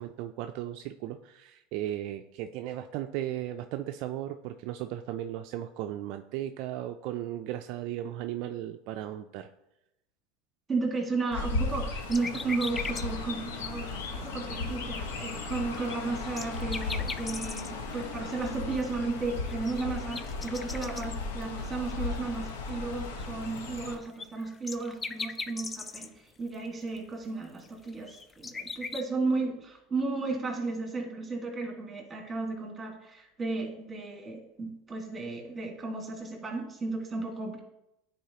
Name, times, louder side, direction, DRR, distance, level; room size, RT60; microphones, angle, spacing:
voice 1, 0.0-9.5, right 12 dB, 60° right, 6 dB, 0.3 m, -36 dB
voice 2, 10.7-26.1 26.4-37.6, right 3 dB, 20° right, 2 dB, 1.7 m, -34 dB
Chirp tweet, 11.3-24.0, left 3 dB, 85° left, 0.9 m, -36 dB
sound 1, 12.1-13.0 13.5-13.6 14.1-14.2 14.5-14.6 14.8-17.8 19.1-19.2 19.5-21.4 21.8-21.9 23.2-26.1 26.5-26.6 27.0-27.1 27.6-29.0, left 4 dB, 20° left, 0.4 m, -39 dB
9.3 x 4.1 x 2.8 m, 0.86 s
supercardioid pair, 110°, 0 cm